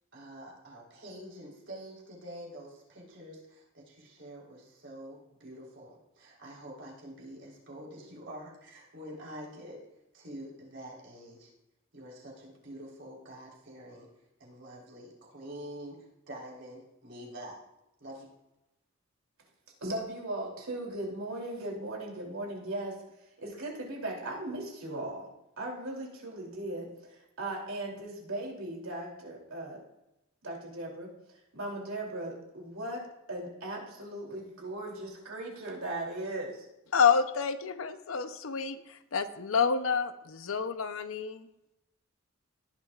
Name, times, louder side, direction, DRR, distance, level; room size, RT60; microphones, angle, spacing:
voice 1, 0.1-9.8 10.1-11.5 11.9-14.1 14.4-17.6 18.0-18.3, equal, 60° right, -3 dB, 4.0 m, -46 dB
voice 2, 19.8-23.0 23.4-25.3 25.6-29.8 30.4-36.7, right 1 dB, 85° right, -1 dB, 3.1 m, -38 dB
voice 3, 36.9-41.5, left 6 dB, 80° left, 10 dB, 0.7 m, -28 dB
17.5 x 10.5 x 2.5 m, 0.89 s
head